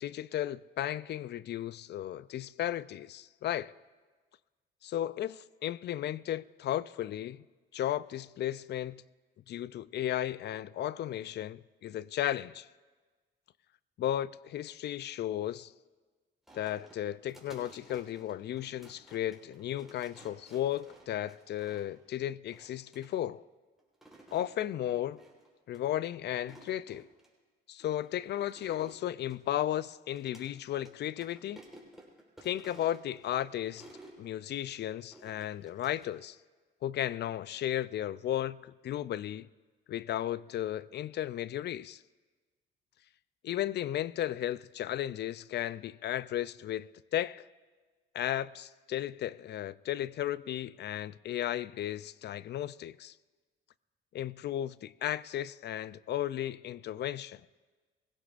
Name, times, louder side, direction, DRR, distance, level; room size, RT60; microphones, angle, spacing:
voice 1, 0.0-3.7 4.8-7.4 7.7-9.0 9.5-12.7 14.0-15.7 16.5-23.4 24.3-25.2 25.7-27.1 27.7-31.6 32.4-33.9 34.2-36.4 36.8-39.5 39.9-42.0 43.4-47.4 48.1-53.1 54.1-57.4, left 12 dB, 60° left, 0.4 m, -34 dB
sound 1, 16.5-22.0 22.5-23.1 23.8-24.6 25.2-25.5 25.7-25.8 26.3-27.3 27.8-30.5 30.8-30.9 31.2-34.2 35.1-36.1, right 1 dB, ahead, 4.0 m, -55 dB
23.5 x 16.5 x 2.5 m
cardioid pair, 90°, 20 cm